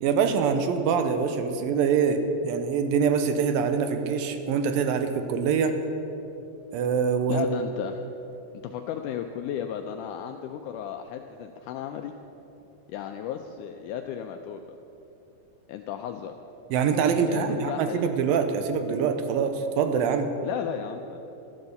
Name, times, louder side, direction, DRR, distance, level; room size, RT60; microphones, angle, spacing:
voice 1, 0.0-5.8 6.7-7.5 16.7-20.3, right 6 dB, 80° right, 8 dB, 2.6 m, -24 dB
voice 2, 7.3-8.1 8.6-12.1 12.9-14.6 15.7-16.4 17.3-18.0 20.4-21.2, left 9 dB, 85° left, 5 dB, 1.8 m, -34 dB
13.0 x 10.5 x 6.9 m, 3.0 s
omnidirectional pair, 4.1 m